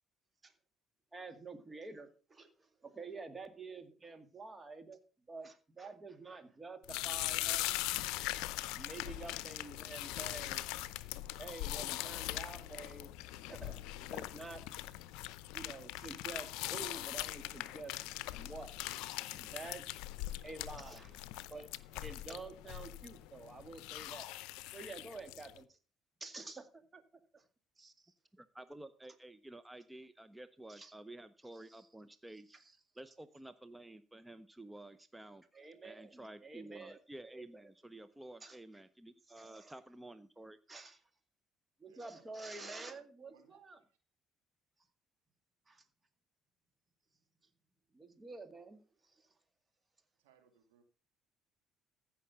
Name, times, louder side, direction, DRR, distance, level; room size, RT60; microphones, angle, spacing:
voice 1, 1.1-2.5 2.8-5.0 5.3-7.7 8.7-10.6 11.4-13.1 13.5-14.6 15.5-17.9 18.3-18.8 19.3-19.8 20.4-21.2 21.5-21.7 22.0-24.3 24.7-25.8 26.2-27.0 27.3-27.4 27.8-28.1 30.7-30.9 31.7-31.8 32.5-32.6 35.5-37.0 38.4-38.6 39.4-39.7 40.7-41.0 41.8-43.8 45.7-45.8 47.9-49.3, right 3 dB, 25° right, 9 dB, 2.1 m, -49 dB
sound 1, 6.8-25.6, left 16 dB, 75° left, 0.6 m, -41 dB
voice 2, 28.3-32.6 33.0-35.4 35.8-40.6, right 1 dB, 10° right, 13 dB, 0.8 m, -52 dB
voice 3, 41.8-43.6 50.2-50.8, right 8 dB, 85° right, 6 dB, 2.2 m, -68 dB
15.0 x 5.9 x 5.6 m, 0.36 s
hypercardioid pair, 65°, 0 cm